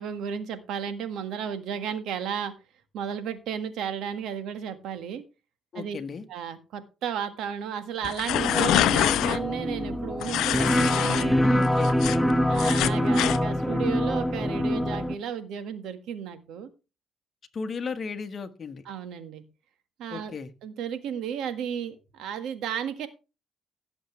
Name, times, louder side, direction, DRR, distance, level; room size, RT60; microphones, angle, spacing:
voice 1, 0.0-2.5 2.9-5.2 5.7-6.0 6.3-11.6 12.5-16.7 18.8-19.4 20.0-20.3 20.6-23.1, right 8 dB, 85° right, 10 dB, 1.6 m, -33 dB
voice 2, 5.7-6.2 11.5-11.9 17.5-18.8 20.1-20.5, left 5 dB, 45° left, 8 dB, 1.4 m, -35 dB
sound 1, 8.0-9.4 10.2-11.2 11.6-13.4, left 13 dB, 85° left, 0.6 m, -25 dB
sound 2, 8.3-15.1, equal, 5° left, 0.8 m, -25 dB
17.0 x 7.2 x 3.3 m, 0.30 s
cardioid pair, 90°, 0 cm